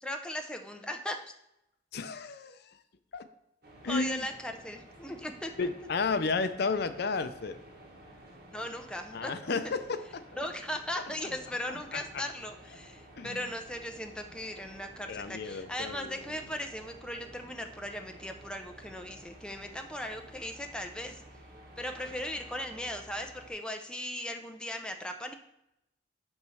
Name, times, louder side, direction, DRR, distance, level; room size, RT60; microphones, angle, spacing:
voice 1, 0.0-1.2 3.9-5.5 8.5-9.7 10.4-21.2 21.8-25.3, left 1 dB, 5° left, 4 dB, 0.6 m, -38 dB
voice 2, 1.9-2.8 3.1-3.3 3.8-4.3 5.6-7.6 9.1-10.2 11.0-11.3 11.7-12.2 13.2-13.4 15.1-16.2, left 4 dB, 60° left, 10 dB, 0.5 m, -33 dB
sound 1, 3.6-23.5, right 1 dB, 55° right, 1.6 m, -52 dB
8.7 x 3.1 x 6.2 m, 0.84 s
head